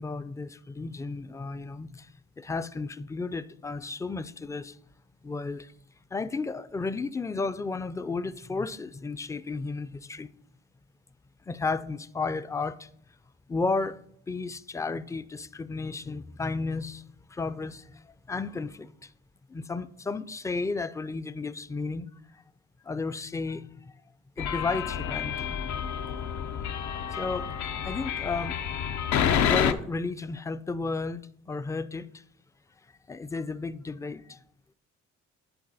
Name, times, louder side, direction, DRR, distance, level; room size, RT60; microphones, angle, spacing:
voice 1, 0.0-2.1 2.4-4.7 5.2-5.7 6.1-10.3 11.5-12.9 13.5-14.0 14.3-17.0 17.3-17.8 18.3-19.1 19.5-22.1 22.9-23.7 24.4-25.8 26.6-26.9 27.2-27.6 27.8-28.6 29.4-32.1 33.1-34.4, left 3 dB, 10° left, 0.3 m, -33 dB
sound 1, 24.4-29.7, left 8 dB, 70° left, 0.6 m, -29 dB
10.5 x 4.0 x 4.0 m
cardioid pair, 80°, 30 cm